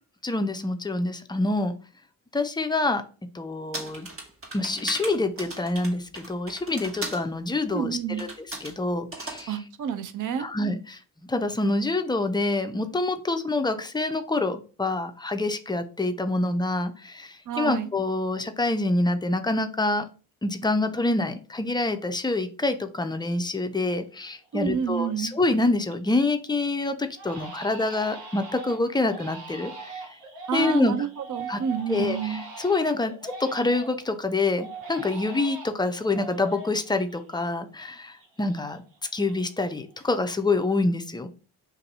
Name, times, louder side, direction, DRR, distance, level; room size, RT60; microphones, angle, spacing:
voice 1, 0.2-1.7 2.3-3.0 3.3-4.1 4.5-8.3 8.6-9.6 10.4-20.0 20.4-30.1 30.5-31.0 31.5-31.6 31.9-38.8 39.1-41.3, left 2 dB, 10° left, 8 dB, 0.4 m, -26 dB
sound 1, 3.7-7.3 8.2-8.8 9.1-9.5, right 2 dB, 30° right, 1.3 m, -37 dB
voice 2, 7.7-8.3 9.5-10.5 17.5-17.9 24.5-25.3 30.5-32.4, right 7 dB, 50° right, 10 dB, 0.6 m, -29 dB
Crying sobbing, 24.6-25.0 25.4-26.3 26.6-26.7 27.2-34.1 34.6-37.9 38.2-39.7 39.9-40.5, right 3 dB, 80° right, 1.1 m, -42 dB
2.7 x 2.6 x 4.0 m, 0.36 s
supercardioid pair, 50°, 42 cm